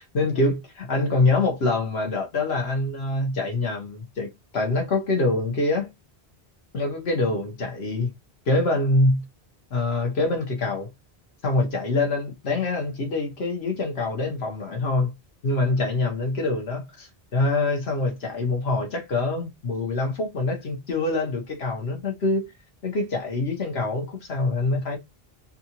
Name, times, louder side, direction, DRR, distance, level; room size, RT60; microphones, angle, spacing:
voice 1, 0.1-5.9 6.7-8.1 8.5-9.2 9.7-10.9 11.4-15.1 15.4-22.5 22.8-25.0, left 2 dB, 85° left, 1.4 m, -25 dB
4.1 x 2.5 x 2.9 m
omnidirectional pair, 1.0 m